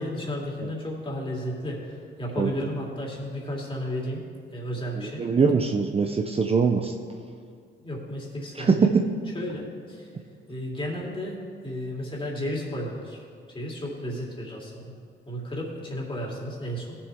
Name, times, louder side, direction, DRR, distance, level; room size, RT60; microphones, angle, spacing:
voice 1, 0.0-4.2 4.5-5.3 7.8-8.9 9.3-10.1 10.5-13.2 13.5-14.9 15.3-17.0, equal, 25° left, -3 dB, 3.0 m, -33 dB
voice 2, 5.0-6.9 8.6-8.9, right 5 dB, 30° right, 4 dB, 0.7 m, -22 dB
17.0 x 7.1 x 3.6 m, 2.2 s
cardioid pair, 90°, 20 cm